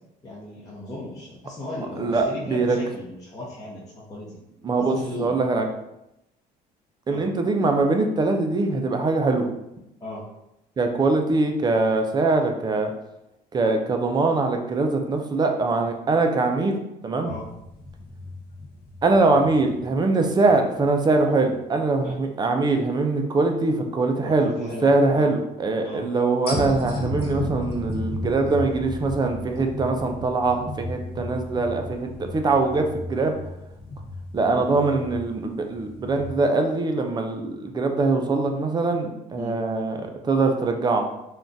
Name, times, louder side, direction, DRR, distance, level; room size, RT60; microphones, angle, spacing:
voice 1, 0.2-4.4 4.8-5.4 7.1-7.2 10.0-10.3 17.2-17.5 22.0-22.1 24.2-25.3 25.8-26.1 34.5-34.7 39.4-39.6, left 2 dB, 20° left, -8 dB, 0.8 m, -36 dB
voice 2, 2.0-2.8 4.6-5.7 7.1-9.5 10.8-12.9 13.5-16.8 17.0-17.3 19.0-33.4 34.3-41.1, right 3 dB, 25° right, 4 dB, 0.4 m, -22 dB
sound 1, 17.2-21.0 21.5-21.6 26.5-36.4, left 2 dB, 65° left, 0.9 m, -34 dB
3.6 x 2.3 x 2.6 m, 0.86 s
cardioid pair, 110°, 17 cm